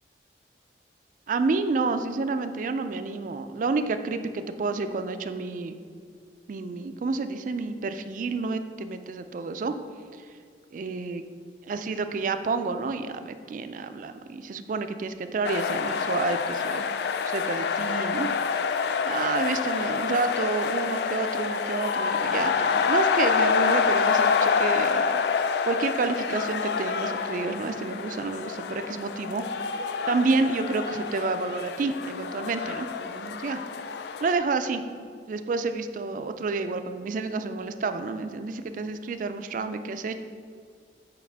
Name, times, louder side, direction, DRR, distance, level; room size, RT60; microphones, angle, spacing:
voice 1, 1.3-5.8 6.5-9.7 10.7-11.2 11.7-16.9 17.2-18.3 19.0-25.2 25.7-29.4 30.1-33.6 34.2-34.8 35.3-40.2, right 3 dB, 45° right, 9 dB, 0.3 m, -29 dB
sound 1, 15.4-34.3, left 6 dB, 65° left, 0.3 m, -27 dB
7.1 x 5.2 x 3.4 m, 2.2 s
head